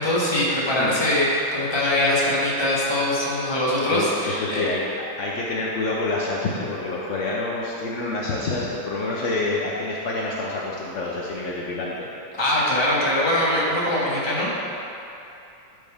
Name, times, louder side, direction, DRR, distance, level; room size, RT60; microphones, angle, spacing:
voice 1, 0.0-4.7 12.4-14.6, left 1 dB, 15° left, -7 dB, 1.2 m, -22 dB
voice 2, 3.8-4.8 5.2-12.1, left 2 dB, 75° left, -4 dB, 0.6 m, -27 dB
12.0 x 4.7 x 3.5 m, 2.7 s
omnidirectional pair, 2.3 m